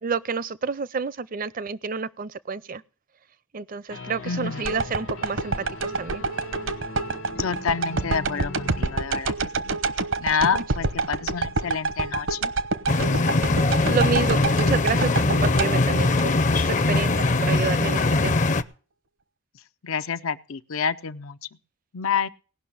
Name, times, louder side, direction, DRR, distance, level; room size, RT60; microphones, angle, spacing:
voice 1, 0.0-2.8 3.5-5.5 5.8-6.2 10.5-10.6 13.9-18.4, right 5 dB, 40° right, 0.5 m, -29 dB
sound 1, 3.9-9.0, left 2 dB, 70° left, 1.5 m, -39 dB
voice 2, 4.2-4.8 7.4-9.3 9.6-9.8 10.2-12.5 19.8-21.4 21.9-22.3, left 6 dB, 85° left, 0.7 m, -28 dB
sound 2, 4.6-16.8 17.3-17.4, right 3 dB, 70° right, 0.9 m, -28 dB
sound 3, 12.9-18.6, left 2 dB, 35° left, 0.6 m, -21 dB
18.0 x 6.0 x 8.5 m
head